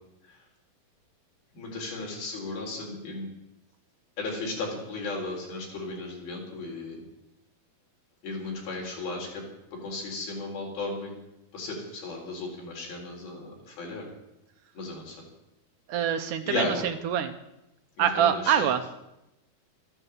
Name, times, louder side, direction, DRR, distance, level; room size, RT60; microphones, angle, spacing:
voice 1, 1.6-3.3 4.2-7.0 8.2-9.4 9.7-11.1 11.5-14.1 14.8-15.2 16.5-16.8 18.0-18.7, left 3 dB, 85° left, -1 dB, 5.8 m, -35 dB
voice 2, 15.9-17.4 18.0-18.8, right 9 dB, 75° right, 8 dB, 2.0 m, -25 dB
14.0 x 9.9 x 8.1 m, 0.90 s
omnidirectional pair, 4.2 m